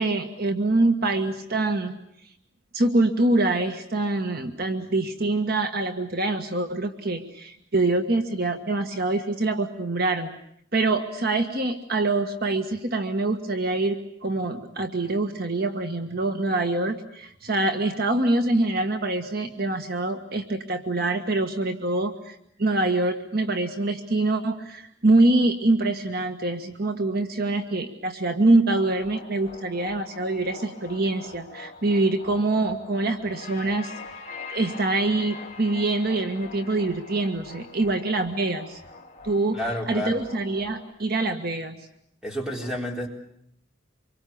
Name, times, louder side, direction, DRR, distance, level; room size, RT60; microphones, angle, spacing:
voice 1, 0.0-2.0 2.7-10.3 10.7-33.9 34.5-38.8 39.2-39.6 39.9-41.8, right 2 dB, 50° right, 6 dB, 1.6 m, -25 dB
sound 1, 28.7-40.9, left 4 dB, 35° left, 2.8 m, -43 dB
voice 2, 39.5-40.2 42.2-43.1, left 1 dB, 5° right, 1 dB, 4.0 m, -30 dB
26.0 x 23.0 x 8.7 m, 0.70 s
head